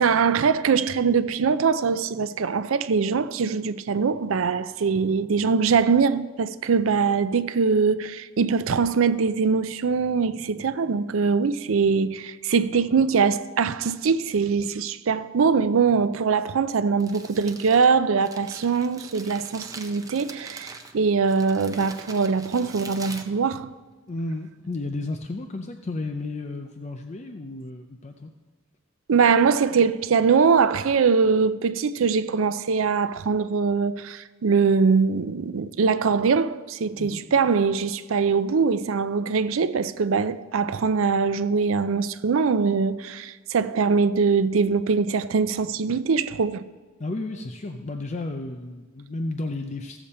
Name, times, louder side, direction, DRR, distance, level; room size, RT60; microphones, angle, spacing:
voice 1, 0.0-23.7 29.1-46.6, right 5 dB, 90° right, 0.5 m, -22 dB
Crumpling crinkling, 16.8-24.1, right 4 dB, 15° right, 0.7 m, -43 dB
voice 2, 24.1-28.3 37.0-37.2 47.0-50.0, left 2 dB, 35° left, 0.5 m, -33 dB
15.5 x 7.0 x 4.2 m
head